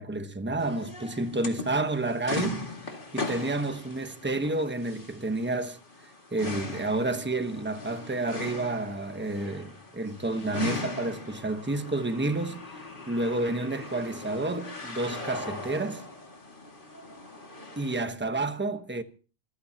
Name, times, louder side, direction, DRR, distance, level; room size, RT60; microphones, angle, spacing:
voice 1, 0.0-2.6 3.1-5.8 6.3-12.6 13.1-16.0 17.8-19.0, right 2 dB, 10° right, 1.1 m, -30 dB
sound 1, 0.6-18.0, left 3 dB, 55° left, 2.4 m, -39 dB
26.5 x 14.5 x 2.9 m
omnidirectional pair, 1.0 m